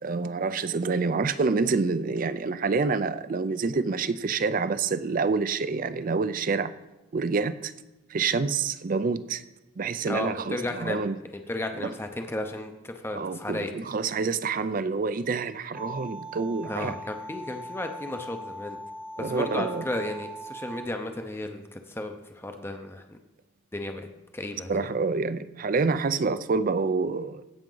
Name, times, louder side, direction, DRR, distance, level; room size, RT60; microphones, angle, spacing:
voice 1, 0.0-6.7 7.1-7.7 8.1-9.4 9.8-11.2 11.8-11.9 13.2-17.0 19.2-19.9 24.7-27.4, right 4 dB, 45° right, 0.4 m, -27 dB
voice 2, 10.0-11.0 11.5-13.7 16.7-18.8 19.2-23.2 23.7-24.1 24.3-24.8, left 1 dB, 10° left, 0.6 m, -34 dB
sound 1, 15.7-20.9, right 1 dB, 5° right, 0.9 m, -40 dB
16.5 x 5.9 x 3.9 m
head